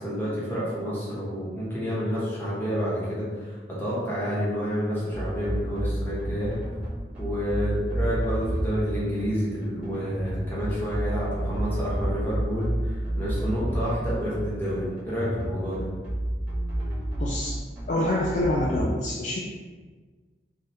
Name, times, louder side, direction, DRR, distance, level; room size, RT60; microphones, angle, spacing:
voice 1, 0.0-6.6 7.2-15.9, equal, 10° left, -8 dB, 1.0 m, -29 dB
sound 1, 5.1-18.8, right 1 dB, 5° right, 0.8 m, -30 dB
voice 2, 17.2-17.6 17.9-19.4, left 1 dB, 40° left, -2 dB, 0.3 m, -26 dB
3.3 x 2.3 x 4.1 m, 1.4 s
head